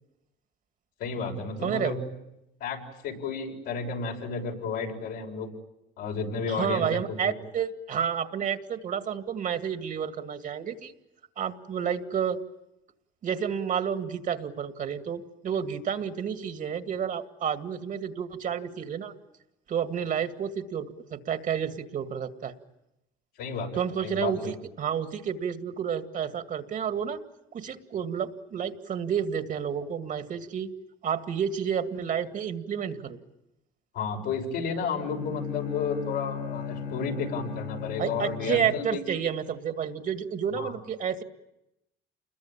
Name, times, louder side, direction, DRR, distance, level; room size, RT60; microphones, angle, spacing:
voice 1, 1.0-2.0 2.6-5.5 6.0-7.3 23.4-24.5 33.9-39.0 40.6-40.7, left 5 dB, 85° left, 1 dB, 6.8 m, -32 dB
voice 2, 1.6-2.0 6.5-10.9 11.4-12.4 13.2-19.1 19.7-22.5 23.7-27.2 27.5-30.7 31.0-33.2 38.0-41.2, right 8 dB, 50° right, 7 dB, 2.1 m, -30 dB
Bowed string instrument, 34.9-39.0, left 7 dB, 60° left, 1.9 m, -36 dB
29.0 x 21.5 x 9.0 m, 0.89 s
cardioid pair, 110°, 17 cm